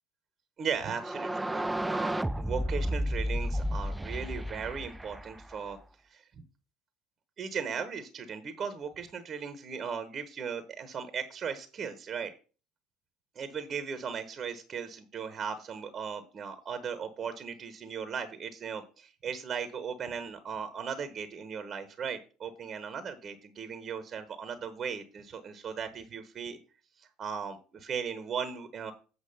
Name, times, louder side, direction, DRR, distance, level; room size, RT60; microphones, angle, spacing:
voice 1, 0.6-5.8 6.0-6.2 7.4-12.3 13.3-26.6 27.0-28.9, right 6 dB, 40° right, 10 dB, 1.1 m, -37 dB
sound 1, 0.9-5.7, equal, 10° right, 0.3 m, -32 dB
8.6 x 4.8 x 5.5 m, 0.35 s
hypercardioid pair, 70°, 0 cm